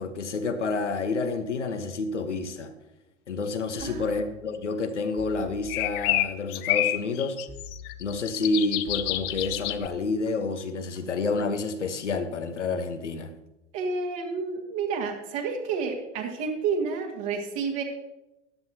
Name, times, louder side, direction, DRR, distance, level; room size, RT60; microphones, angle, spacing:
voice 1, 0.0-2.7 3.3-7.4 8.0-13.3, left 3 dB, 80° left, 8 dB, 1.2 m, -29 dB
sound 1, 3.8-4.8 5.2-6.6 7.5-8.5 8.9-10.3 10.7-11.1, left 4 dB, 15° right, 1.5 m, -45 dB
voice 2, 3.8-4.2 13.7-17.8, right 5 dB, 50° right, 1 dB, 2.1 m, -30 dB
sound 2, 5.7-9.9, left 17 dB, 40° left, 0.6 m, -28 dB
14.0 x 10.5 x 2.9 m, 0.95 s
figure-of-eight pair, 90°, 35 cm